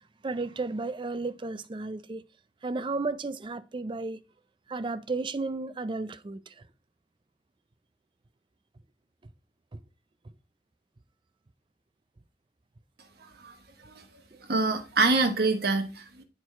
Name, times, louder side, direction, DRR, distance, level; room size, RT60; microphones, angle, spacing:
voice 1, 0.2-2.2 2.6-4.2 4.7-6.5, right 3 dB, 25° right, 0.4 m, -33 dB
voice 2, 14.5-16.2, right 3 dB, 60° right, 1.2 m, -26 dB
8.1 x 4.6 x 4.2 m
head